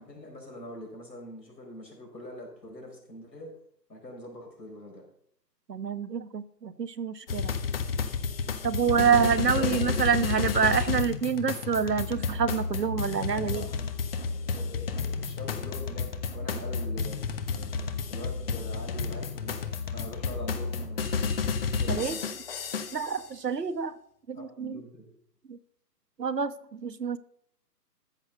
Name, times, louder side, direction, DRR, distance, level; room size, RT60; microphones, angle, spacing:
voice 1, 0.0-3.5 3.9-5.1 9.5-9.9 13.3-13.9 14.5-16.1 16.3-17.7 18.1-19.6 19.9-22.2 24.3-25.1, left 1 dB, 85° left, 1 dB, 4.9 m, -43 dB
voice 2, 5.7-7.5 8.6-13.7 21.9-22.2 22.9-23.9 24.3-24.8 25.5-25.6 26.2-27.2, right 6 dB, 75° right, 12 dB, 1.1 m, -27 dB
sound 1, 7.3-23.2, left 5 dB, 35° left, 1.2 m, -31 dB
14.0 x 6.1 x 6.7 m, 0.68 s
figure-of-eight pair, 140°, 49 cm